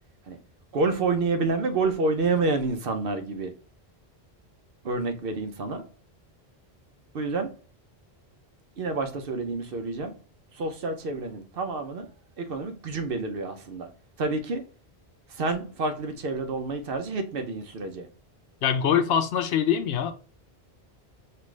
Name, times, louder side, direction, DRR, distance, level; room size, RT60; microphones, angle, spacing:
voice 1, 0.7-3.5 4.8-5.8 7.1-7.5 8.8-10.1 10.5-12.1 12.4-13.9 14.2-14.6 15.3-18.1, right 3 dB, 65° right, 0.9 m, -28 dB
voice 2, 18.6-20.1, left 8 dB, 70° left, 0.8 m, -23 dB
5.4 x 2.5 x 3.1 m
omnidirectional pair, 1.1 m